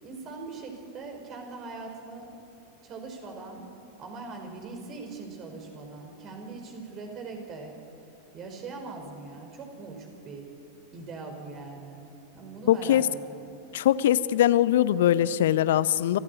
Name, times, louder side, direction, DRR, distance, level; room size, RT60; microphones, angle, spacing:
voice 1, 0.0-2.3 2.8-3.7 4.0-7.7 8.3-10.5 10.9-12.1 12.3-13.6, right 3 dB, 30° right, 3 dB, 5.0 m, -41 dB
voice 2, 12.7-13.1 13.7-16.2, left 12 dB, 55° left, 18 dB, 0.7 m, -22 dB
28.0 x 14.5 x 9.9 m, 2.7 s
figure-of-eight pair, 90°, 0 cm